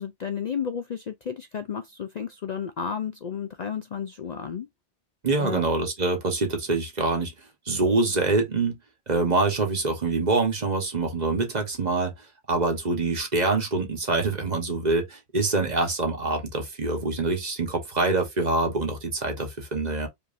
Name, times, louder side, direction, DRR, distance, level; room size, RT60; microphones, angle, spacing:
voice 1, 0.0-4.7 5.4-5.7, left 7 dB, 55° left, 0.5 m, -32 dB
voice 2, 5.2-7.3 7.7-8.8 9.1-12.1 12.5-20.1, right 3 dB, 40° right, 1.2 m, -25 dB
5.3 x 3.0 x 2.5 m
omnidirectional pair, 1.1 m